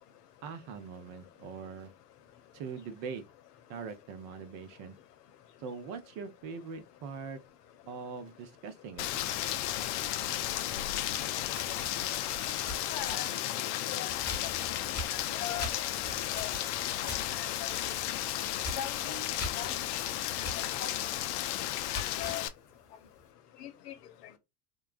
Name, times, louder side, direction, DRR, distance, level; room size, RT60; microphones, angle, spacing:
voice 1, 0.4-1.9 2.5-3.2 3.7-5.0 5.6-7.4 7.9-9.2, right 5 dB, 50° right, 0.8 m, -42 dB
Rain, 9.0-22.5, left 13 dB, 50° left, 0.4 m, -34 dB
sound 1, 11.6-13.4 14.3-14.6 14.9-17.3 17.6-17.9 18.2-18.3 18.6-18.9 19.4-19.7 20.4-20.7 21.1-21.2 21.7-22.4, left 2 dB, 20° left, 1.4 m, -39 dB
voice 2, 12.9-13.3 13.9-14.1 15.1-15.7 16.3-16.5 17.3-17.7 18.8-19.2 19.6-20.4 20.8-20.9 21.9-22.4 23.6-23.9, left 10 dB, 70° left, 0.8 m, -40 dB
3.7 x 2.3 x 2.4 m
hypercardioid pair, 85°, 50 cm